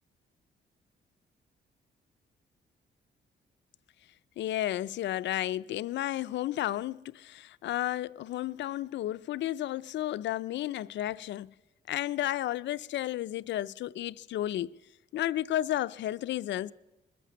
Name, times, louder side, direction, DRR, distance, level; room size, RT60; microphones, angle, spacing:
voice 1, 4.4-11.5 11.9-14.7 15.1-16.7, left 13 dB, 75° left, 0.4 m, -32 dB
21.5 x 8.5 x 6.8 m
wide cardioid pair, 150°, 19 cm